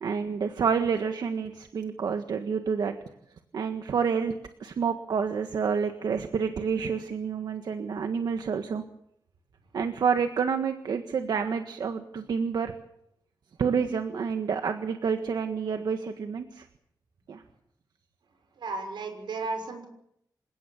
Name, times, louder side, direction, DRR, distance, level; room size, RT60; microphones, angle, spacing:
voice 1, 0.0-3.0 3.5-4.3 4.6-8.8 9.7-12.7 13.6-16.7 17.3-17.4, right 6 dB, 65° right, 6 dB, 1.6 m, -28 dB
voice 2, 18.6-19.9, right 3 dB, 85° right, 6 dB, 6.2 m, -34 dB
27.5 x 17.5 x 7.3 m, 0.75 s
wide cardioid pair, 180°, 8 cm